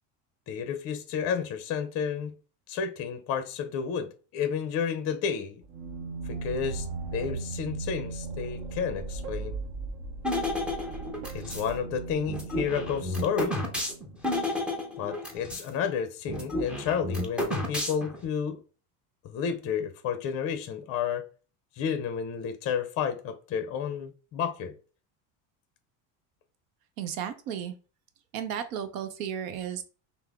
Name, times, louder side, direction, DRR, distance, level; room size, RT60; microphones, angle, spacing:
voice 1, 0.5-2.3 2.7-5.6 6.3-6.9 7.1-9.6 11.3-13.6 15.0-18.6 19.2-21.2 21.8-24.7, left 7 dB, 35° left, 0.6 m, -31 dB
sound 1, 5.6-14.2, right 3 dB, 45° right, 0.8 m, -38 dB
sound 2, 10.2-11.7 12.3-15.7 16.0-16.1 16.3-18.2, left 1 dB, 5° right, 0.6 m, -31 dB
voice 2, 27.0-27.8 28.3-29.8, right 9 dB, 85° right, 0.8 m, -34 dB
5.6 x 2.0 x 3.5 m
cardioid pair, 145°, 40 cm